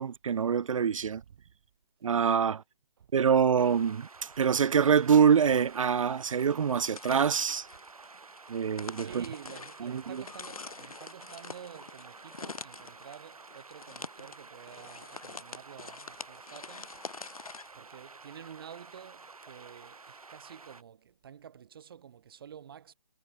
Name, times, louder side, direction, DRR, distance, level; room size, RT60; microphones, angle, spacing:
voice 1, 0.0-1.2 2.0-2.6 3.1-4.1 4.4-7.7 8.5-9.2 9.8-10.0, right 7 dB, 65° right, 0.5 m, -25 dB
voice 2, 1.0-1.5 3.0-3.1 8.9-17.0 17.3-22.9, right 8 dB, 40° right, 6.0 m, -50 dB
sound 1, 3.6-20.8, right 4 dB, 85° right, 7.8 m, -51 dB
sound 2, 6.8-17.7, left 4 dB, 85° left, 3.2 m, -45 dB
hypercardioid pair, 165°, 18 cm